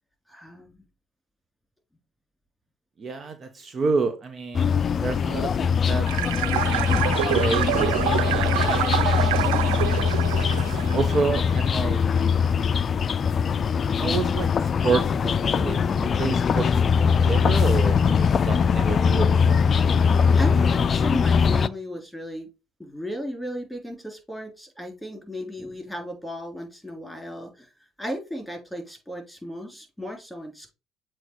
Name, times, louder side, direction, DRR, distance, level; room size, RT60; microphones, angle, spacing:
voice 1, 0.3-0.8 20.4-22.5 22.8-27.7 28.0-30.7, equal, ahead, 2 dB, 3.4 m, -35 dB
voice 2, 3.0-6.1 6.5-7.0 7.3-8.5 9.5-10.4 10.9-12.0 13.8-16.7 17.3-19.6, right 4 dB, 40° right, 7 dB, 1.0 m, -29 dB
sound 1, 4.5-21.7, left 6 dB, 45° left, 0.4 m, -22 dB
sound 2, 6.1-11.8, right 15 dB, 90° right, 0.3 m, -27 dB
7.6 x 3.1 x 4.7 m, 0.27 s
supercardioid pair, 75°, 0 cm